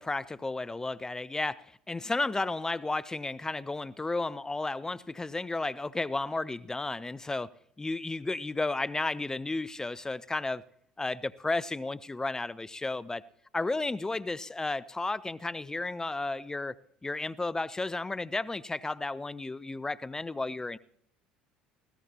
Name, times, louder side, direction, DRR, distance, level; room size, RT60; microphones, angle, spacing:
voice 1, 0.0-7.5 7.8-10.6 11.0-13.2 13.5-16.8 17.0-20.8, left 2 dB, 15° left, 0.5 m, -33 dB
20.0 x 16.5 x 2.9 m
figure-of-eight pair, 60°, 4 cm